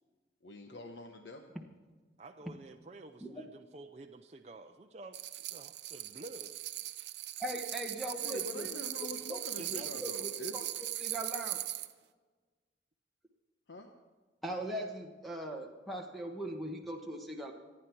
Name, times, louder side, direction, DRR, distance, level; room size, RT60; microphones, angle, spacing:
voice 1, 0.4-1.5 8.2-10.7 13.7-13.9, left 1 dB, 75° left, 4 dB, 1.0 m, -45 dB
voice 2, 2.2-6.6 9.6-10.0, right 2 dB, 35° right, 4 dB, 0.5 m, -50 dB
sound 1, 5.1-11.9, right 14 dB, 70° right, 0.7 m, -39 dB
voice 3, 7.4-9.5 9.8-11.6 14.4-17.5, right 1 dB, ahead, 1 dB, 1.2 m, -40 dB
26.0 x 9.9 x 4.6 m, 1.4 s
head